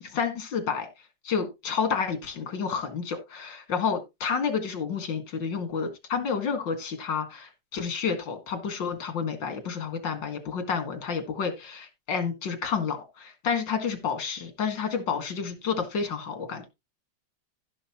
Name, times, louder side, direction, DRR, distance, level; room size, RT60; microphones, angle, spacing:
voice 1, 0.0-0.9 1.2-16.7, left 6 dB, 85° left, 2.5 m, -30 dB
15.5 x 6.5 x 3.0 m
omnidirectional pair, 1.9 m